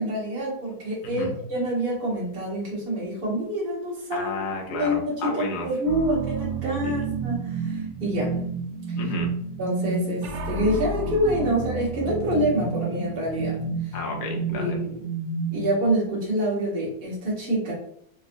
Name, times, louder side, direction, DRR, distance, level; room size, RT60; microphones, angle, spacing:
voice 1, 0.0-4.3 4.7-8.4 8.9-9.0 9.6-13.6 13.8-14.0 14.5-15.0 15.5-17.7, right 1 dB, 35° right, -7 dB, 1.5 m, -26 dB
voice 2, 1.0-1.4 4.1-5.7 6.8-6.9 8.9-9.3 13.9-14.8, left 2 dB, 55° left, 0 dB, 0.5 m, -31 dB
sound 1, 5.9-15.8, right 4 dB, 90° right, 1.3 m, -30 dB
3.8 x 3.0 x 2.6 m, 0.68 s
omnidirectional pair, 1.9 m